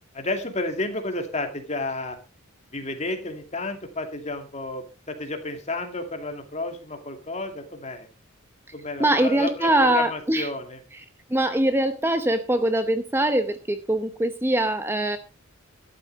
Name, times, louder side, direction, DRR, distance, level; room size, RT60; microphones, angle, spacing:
voice 1, 0.1-2.2 2.7-8.1 8.7-10.8, left 2 dB, 30° left, 5 dB, 2.5 m, -31 dB
voice 2, 9.0-10.5 11.3-15.2, right 1 dB, 10° right, 9 dB, 0.8 m, -22 dB
13.0 x 11.5 x 4.0 m, 0.31 s
head